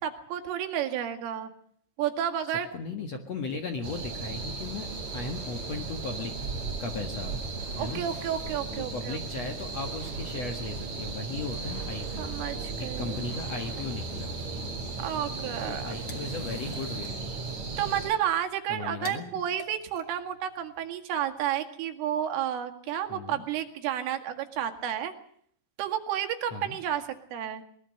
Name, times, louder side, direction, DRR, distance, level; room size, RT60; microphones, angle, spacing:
voice 1, 0.0-1.5 2.0-2.7 7.8-9.2 12.2-13.2 15.0-15.9 17.8-25.1 25.8-27.0 27.3-27.6, right 10 dB, 75° right, 6 dB, 4.4 m, -31 dB
voice 2, 2.7-4.9 5.1-6.3 6.8-7.4 7.8-8.0 8.8-12.3 12.8-14.3 15.6-17.3 18.7-19.4 23.1-23.4 26.5-26.8, left 3 dB, 75° left, 6 dB, 1.5 m, -37 dB
sound 1, 3.8-18.1, right 3 dB, 40° right, 3.9 m, -36 dB
sound 2, 4.6-18.4, left 2 dB, 60° left, 8.5 m, -52 dB
sound 3, 15.6-20.9, left 4 dB, 35° left, 2.5 m, -50 dB
22.5 x 21.0 x 6.5 m, 0.63 s
omnidirectional pair, 5.8 m